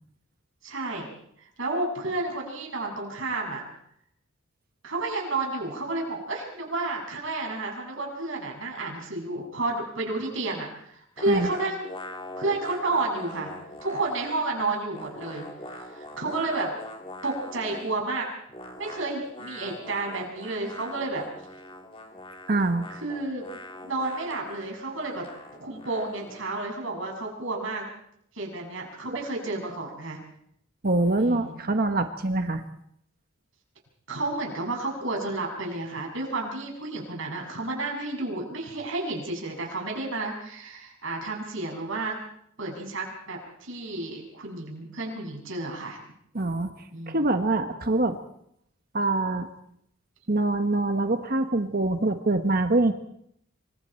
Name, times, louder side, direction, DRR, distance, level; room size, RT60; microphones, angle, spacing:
voice 1, 0.6-1.1 1.6-3.6 4.8-11.9 12.4-13.5 13.8-15.5 15.8-16.7 17.2-18.3 18.8-21.2 23.0-23.5 23.8-25.3 25.6-27.9 28.4-30.2 31.2-31.6 34.1-42.2 42.6-46.0 46.9-47.2, right 2 dB, 65° right, 0 dB, 6.8 m, -31 dB
sound 1, 11.2-14.5 14.7-18.0 18.5-26.5, left 1 dB, 25° left, 3.4 m, -43 dB
voice 2, 22.5-22.9 30.8-32.6 46.3-46.7 47.1-48.2 48.9-49.5 50.3-52.9, right 2 dB, 45° right, 7 dB, 1.2 m, -24 dB
27.0 x 25.0 x 4.5 m, 0.72 s
head